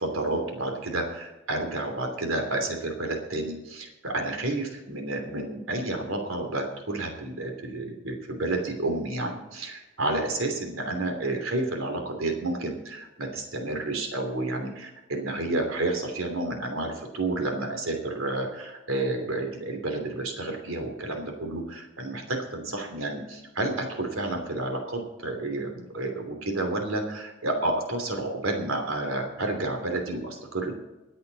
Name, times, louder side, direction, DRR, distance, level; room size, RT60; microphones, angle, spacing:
voice 1, 0.0-30.8, right 2 dB, 85° right, 4 dB, 3.0 m, -30 dB
24.0 x 8.7 x 4.1 m, 1.1 s
head